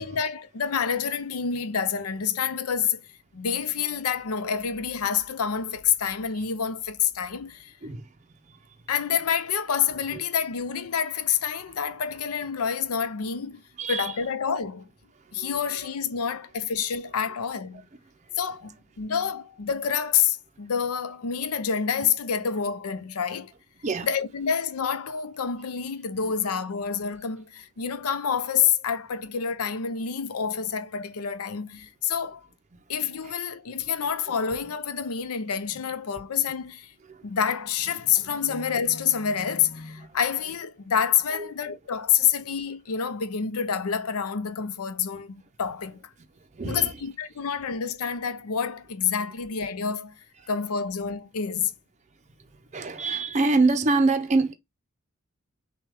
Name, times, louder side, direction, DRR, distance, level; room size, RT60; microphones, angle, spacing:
voice 1, 0.0-3.0 3.3-7.7 8.9-13.6 13.9-14.9 15.3-17.8 18.4-23.5 24.0-32.5 32.9-36.9 37.2-46.0 46.6-50.1 50.5-51.7, left 7 dB, 90° left, 0.6 m, -28 dB
voice 2, 7.8-8.2 8.5-8.6 10.1-10.2 13.8-14.2 15.3-15.6 23.8-24.1 33.2-33.3 33.8-33.9 37.0-37.3 38.1-38.2 40.1-40.2 41.3-41.5 46.5-47.0 50.4-50.5 52.7-54.5, right 3 dB, 30° right, 0.5 m, -26 dB
6.0 x 2.3 x 3.4 m
head